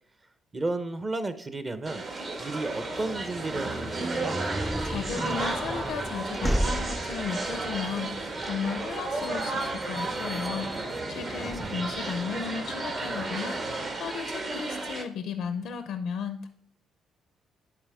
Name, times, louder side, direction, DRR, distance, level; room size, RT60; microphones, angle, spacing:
voice 1, 0.5-2.0 2.4-4.4 11.4-11.8, right 2 dB, 30° right, 10 dB, 0.8 m, -33 dB
sound 1, 1.9-15.0, right 2 dB, 50° right, 1.7 m, -33 dB
sound 2, 2.7-13.9, right 1 dB, 85° right, 2.2 m, -45 dB
sound 3, 3.5-12.2, equal, 5° right, 0.4 m, -35 dB
voice 2, 4.8-16.5, left 6 dB, 80° left, 8 dB, 0.5 m, -35 dB
11.0 x 4.2 x 3.4 m, 0.64 s
cardioid pair, 90°, 0 cm